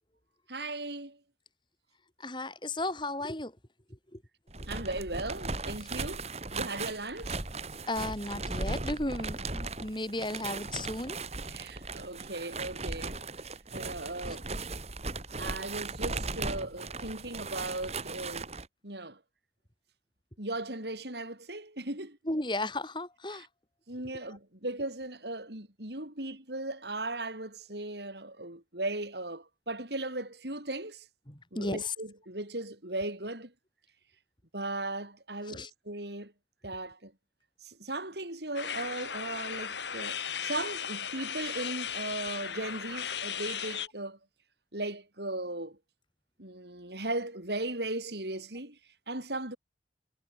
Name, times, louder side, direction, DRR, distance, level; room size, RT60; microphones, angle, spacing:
voice 1, 0.5-1.2 4.7-7.4 11.5-13.2 13.7-14.5 15.4-18.5 18.8-19.2 20.4-22.2 23.3-23.5 23.9-31.1 31.5-33.5 34.5-36.3 36.6-37.1 37.6-44.2 44.7-45.8 46.4-48.8 49.1-49.6, right 2 dB, 70° right, 7.0 m, -37 dB
voice 2, 2.2-3.5 4.1-4.2 7.9-11.2 22.2-23.5 24.1-24.2 31.3-31.9 35.5-35.7, left 2 dB, 25° left, 4.7 m, -34 dB
sound 1, 4.5-18.7, right 3 dB, 35° right, 2.8 m, -37 dB
sound 2, 38.5-43.9, left 8 dB, 85° left, 2.9 m, -36 dB
head